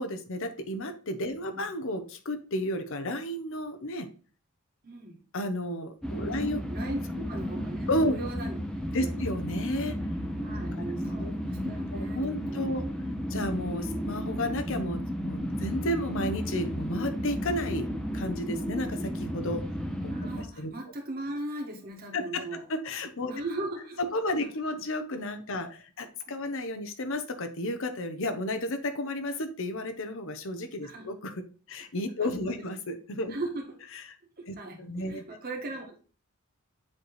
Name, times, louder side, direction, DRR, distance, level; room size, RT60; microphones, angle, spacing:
voice 1, 0.0-4.1 5.3-6.9 7.9-8.1 8.9-10.0 10.8-10.9 11.2-11.4 11.6-12.8 13.3-17.9 18.1-19.6 20.0-20.1 20.4-20.7 22.1-22.4 22.7-23.3 24.0-33.3 34.5-35.2, left 1 dB, 60° left, 9 dB, 0.9 m, -32 dB
voice 2, 1.3-1.6 4.8-5.2 6.2-8.6 9.0-9.3 10.4-12.8 13.9-14.1 20.1-22.6 23.3-24.0 24.4-24.5 30.8-31.1 32.2-32.6 33.3-33.8 34.4-36.0, right 2 dB, 45° right, 2 dB, 1.6 m, -39 dB
sound 1, 6.0-20.4, equal, 5° left, 0.8 m, -33 dB
7.4 x 3.3 x 4.2 m, 0.38 s
head